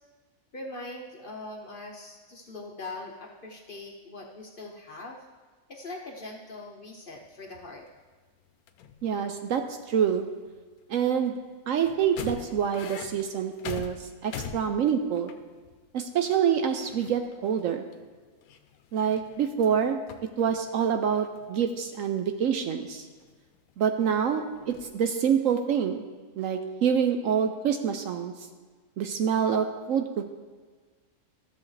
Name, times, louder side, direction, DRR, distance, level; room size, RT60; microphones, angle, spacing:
voice 1, 0.5-5.2 5.7-7.9, left 2 dB, 45° left, 0 dB, 0.8 m, -41 dB
sound 1, 7.3-8.1 8.5-9.6 9.9-11.3 11.8-15.8 16.2-16.3 16.5-17.7 17.9-19.8 20.1-21.0 21.2-22.1 22.6-24.0 24.5-24.9, left 7 dB, 75° left, 1.1 m, -44 dB
voice 2, 9.0-10.3 10.9-11.4 11.7-15.3 15.9-17.9 18.9-23.1 23.8-26.0 26.4-28.3 29.0-30.3, right 7 dB, 70° right, 6 dB, 0.9 m, -26 dB
13.0 x 7.1 x 3.2 m, 1.4 s
omnidirectional pair, 1.6 m